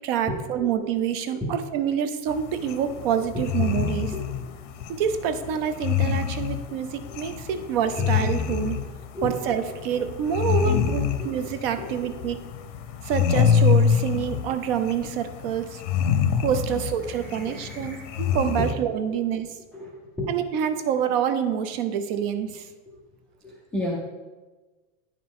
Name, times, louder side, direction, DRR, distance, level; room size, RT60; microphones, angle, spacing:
voice 1, 0.0-4.1 4.9-8.8 9.2-12.4 13.0-15.8 16.4-19.5 20.3-22.7, right 8 dB, 50° right, 9 dB, 0.6 m, -27 dB
sound 1, 2.3-18.7, left 7 dB, 85° left, 0.8 m, -26 dB
voice 2, 17.1-18.1 18.6-18.7 19.7-20.3 23.4-24.0, left 1 dB, 5° left, -4 dB, 0.3 m, -33 dB
9.6 x 5.0 x 3.6 m, 1.3 s
supercardioid pair, 170°, 36 cm